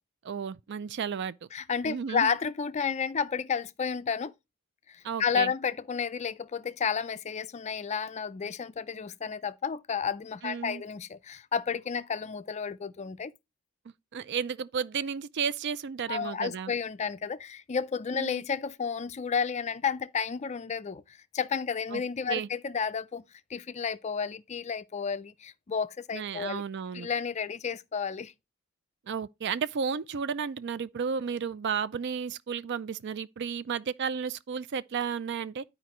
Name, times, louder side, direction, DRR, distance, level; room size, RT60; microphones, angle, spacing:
voice 1, 0.2-1.3 1.9-2.3 5.0-5.5 10.4-10.8 14.1-16.7 18.1-18.4 21.9-22.0 22.3-22.5 26.1-27.1 29.1-35.6, right 6 dB, 50° right, 0.4 m, -33 dB
voice 2, 1.5-4.3 4.9-13.3 16.1-23.2 23.5-26.6 26.9-28.3, left 6 dB, 30° left, 0.4 m, -32 dB
12.0 x 5.0 x 3.0 m
head